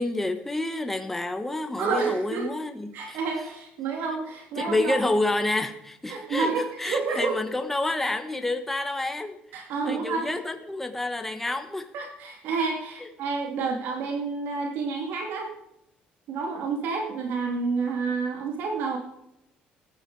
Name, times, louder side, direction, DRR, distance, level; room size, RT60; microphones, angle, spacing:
voice 1, 0.0-3.2 4.6-9.4 9.8-11.9, left 2 dB, 5° left, 6 dB, 1.3 m, -29 dB
voice 2, 1.8-2.4 2.9-4.9 6.1-7.4 9.5-10.3 11.9-15.5 16.3-19.0, right 4 dB, 75° right, 2 dB, 2.6 m, -29 dB
14.5 x 11.0 x 4.8 m, 0.82 s
cardioid pair, 140°, 3 cm